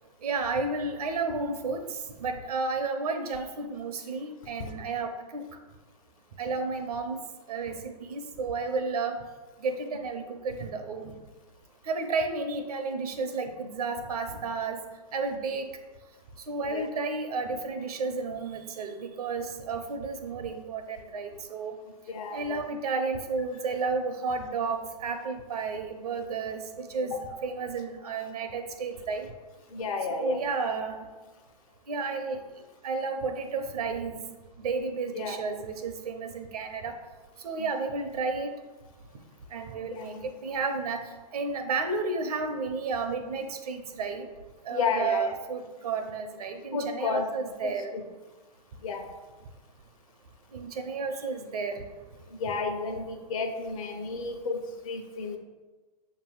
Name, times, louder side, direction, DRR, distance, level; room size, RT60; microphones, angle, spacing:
voice 1, 0.2-5.4 6.4-7.2 7.5-9.2 9.6-11.1 11.8-14.8 15.1-15.7 16.5-21.7 22.3-29.3 30.1-31.0 31.9-32.4 32.8-34.2 34.6-36.9 37.4-38.5 39.5-40.2 40.4-41.0 41.3-44.3 44.6-47.9 50.5-51.8, right 4 dB, 70° right, 6 dB, 0.8 m, -32 dB
voice 2, 22.1-22.6 27.1-27.2 29.7-30.4 35.1-35.4 37.6-37.7 39.9-40.2 44.7-45.3 46.7-47.2 47.6-48.0 48.8-49.1 52.3-55.4, left 4 dB, 60° left, 5 dB, 1.0 m, -32 dB
7.0 x 3.0 x 4.6 m, 1.3 s
figure-of-eight pair, 105°, 20 cm